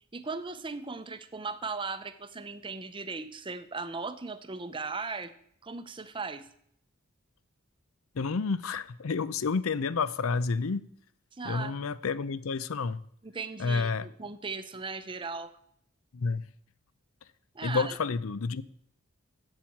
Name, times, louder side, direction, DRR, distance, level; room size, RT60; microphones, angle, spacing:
voice 1, 0.1-5.3 5.6-6.5 11.3-11.8 13.2-15.5 17.5-18.0, right 4 dB, 25° right, 0.6 m, -37 dB
voice 2, 8.1-10.9 11.4-13.0 13.6-14.1 16.1-16.4 17.6-18.6, left 4 dB, 75° left, 0.5 m, -30 dB
7.6 x 7.4 x 8.5 m
head